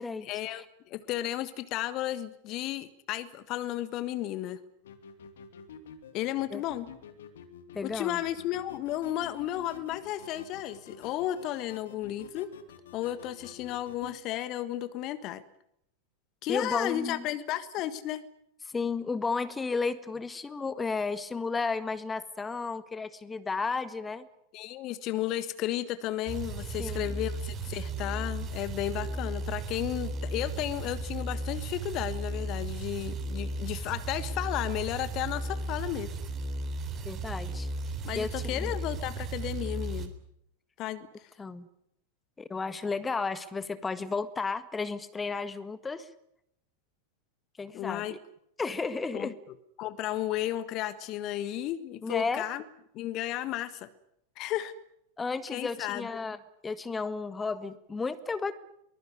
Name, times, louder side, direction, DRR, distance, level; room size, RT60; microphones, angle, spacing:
voice 1, 0.2-4.6 6.1-6.9 7.8-12.5 12.9-15.4 16.4-18.2 24.5-36.1 38.0-40.1 40.8-41.3 47.7-48.1 49.1-49.3 49.8-52.6 52.9-53.9 54.4-54.7 55.5-56.1, left 13 dB, 40° left, 15 dB, 1.5 m, -33 dB
sound 1, 4.8-14.2, left 7 dB, 60° left, 2.7 m, -49 dB
voice 2, 7.7-8.2 16.5-17.3 18.7-24.3 26.8-27.1 37.0-37.7 38.1-38.7 41.4-41.7 42.4-46.1 47.6-48.2 48.6-49.3 52.0-52.4 55.2-56.4 56.6-58.5, left 4 dB, 15° left, 14 dB, 1.6 m, -33 dB
sound 2, 26.3-40.1, right 2 dB, 25° right, 3.4 m, -35 dB
23.5 x 21.0 x 9.7 m, 0.75 s
figure-of-eight pair, 90°, 0 cm